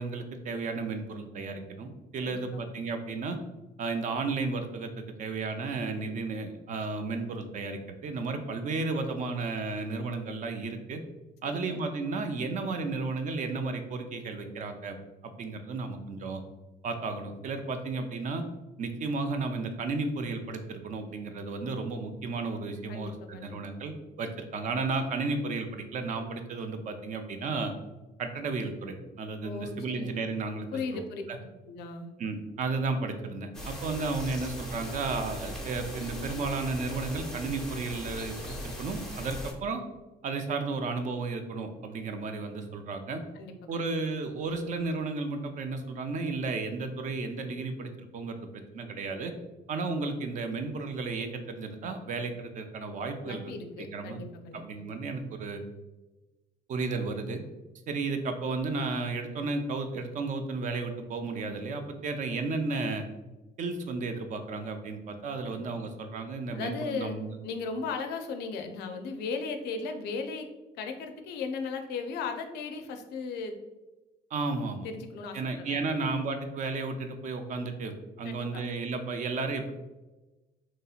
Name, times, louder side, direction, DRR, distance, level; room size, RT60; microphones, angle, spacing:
voice 1, 0.0-3.4 3.8-11.0 11.4-15.0 15.2-16.4 16.8-18.4 18.8-27.7 28.2-30.7 30.9-31.0 31.3-31.4 32.2-39.8 40.2-43.2 43.7-49.3 49.7-53.4 53.8-54.2 54.5-55.6 56.7-57.4 57.9-63.0 63.6-67.4 74.3-74.9 75.3-79.7, right 3 dB, 45° right, 6 dB, 0.4 m, -33 dB
voice 2, 2.2-2.6 11.4-11.8 22.9-23.7 29.4-30.1 30.7-31.2 31.7-32.1 43.4-43.8 53.2-54.8 65.5-65.8 66.5-67.2 67.4-70.5 70.8-73.6 74.8-76.2 78.2-78.6, left 4 dB, 80° left, 6 dB, 0.4 m, -37 dB
sound 1, 33.5-39.5, equal, 5° left, 0.6 m, -39 dB
2.9 x 2.7 x 2.4 m, 1.1 s
cardioid pair, 110°, 17 cm